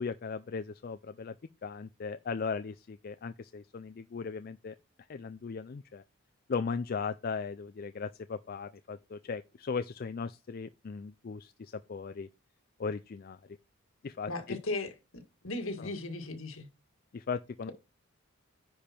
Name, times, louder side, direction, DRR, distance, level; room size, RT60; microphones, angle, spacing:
voice 1, 0.0-1.3 1.6-4.7 5.1-6.0 6.5-12.3 12.8-13.4 14.0-14.6 15.8-15.9 17.1-17.7, left 5 dB, 40° left, 0.4 m, -37 dB
voice 2, 14.3-14.9 15.4-16.7, left 2 dB, 65° left, 1.8 m, -36 dB
10.0 x 5.1 x 4.4 m
head